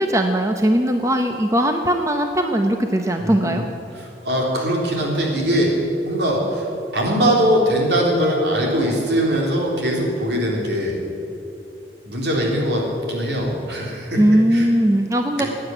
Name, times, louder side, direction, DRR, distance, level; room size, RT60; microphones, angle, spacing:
voice 1, 0.0-3.6 14.2-15.5, right 1 dB, 15° right, 5 dB, 0.7 m, -19 dB
voice 2, 3.2-3.6 3.9-5.8 6.0-11.0 12.0-14.2 14.5-14.7 15.4-15.5, equal, 65° right, -1 dB, 3.6 m, -21 dB
16.5 x 9.6 x 9.0 m, 2.8 s
head